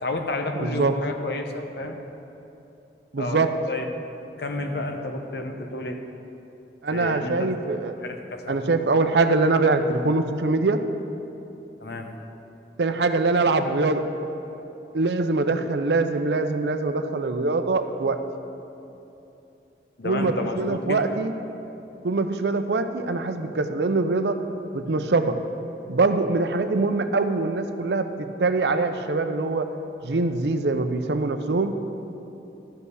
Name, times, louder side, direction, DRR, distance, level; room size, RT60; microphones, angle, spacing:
voice 1, 0.0-2.0 3.2-3.4 3.7-3.8 4.4-6.0 6.9-7.5 8.0-8.6 11.8-12.1 20.0-21.0, left 2 dB, 65° left, 5 dB, 0.9 m, -31 dB
voice 2, 0.6-0.9 3.1-3.5 6.8-8.1 8.5-10.8 12.8-14.0 14.9-18.2 20.0-21.3 22.0-24.4 24.7-25.4 25.9-29.7 30.0-31.8, right 3 dB, 75° right, 8 dB, 0.6 m, -23 dB
12.5 x 5.5 x 6.3 m, 2.9 s
head